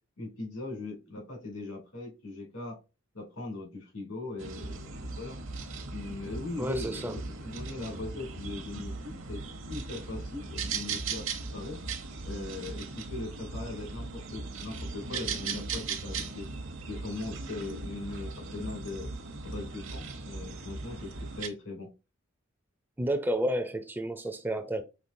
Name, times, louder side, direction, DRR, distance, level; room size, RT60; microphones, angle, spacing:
voice 1, 0.2-2.8 3.1-5.4 5.9-9.4 9.7-11.8 12.2-16.5 16.9-19.1 19.4-21.9, left 2 dB, 85° left, 2.8 m, -40 dB
sound 1, 4.4-21.5, right 4 dB, 70° right, 0.8 m, -38 dB
voice 2, 6.6-7.2 23.0-24.8, right 1 dB, 10° right, 0.4 m, -31 dB
5.8 x 3.5 x 2.6 m
head